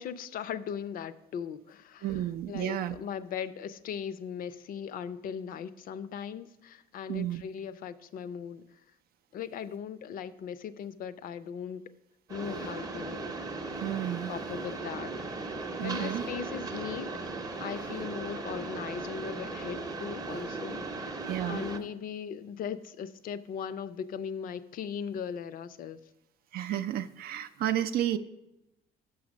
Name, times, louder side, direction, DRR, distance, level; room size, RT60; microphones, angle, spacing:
voice 1, 0.0-2.2 2.5-8.8 9.3-11.8 12.3-13.3 14.3-15.3 15.8-17.1 17.6-26.0, left 7 dB, 55° left, 13 dB, 0.5 m, -38 dB
voice 2, 2.0-3.0 7.1-7.4 13.8-14.3 15.8-16.2 21.3-21.7 26.5-28.2, right 12 dB, 65° right, 10 dB, 0.4 m, -31 dB
Mechanisms, 12.3-21.8, right 3 dB, 20° right, 0.7 m, -37 dB
6.3 x 5.8 x 6.0 m, 0.89 s
cardioid pair, 110°, 17 cm